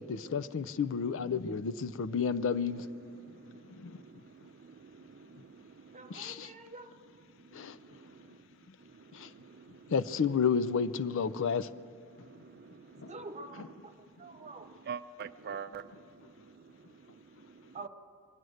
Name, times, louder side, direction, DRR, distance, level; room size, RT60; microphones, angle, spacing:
voice 1, 0.0-2.9 3.7-4.0 6.1-6.5 7.5-7.8 8.7-8.8 9.1-9.3 9.9-11.7 13.0-13.1, left 6 dB, 65° left, 0.4 m, -31 dB
voice 2, 3.0-6.2 7.4-9.9 12.1-13.1 14.3-17.8, right 6 dB, 50° right, 0.4 m, -48 dB
voice 3, 5.9-7.0 13.1-13.9 14.2-14.7 17.7-17.9, right 3 dB, 35° right, 1.1 m, -46 dB
24.0 x 9.4 x 6.4 m
head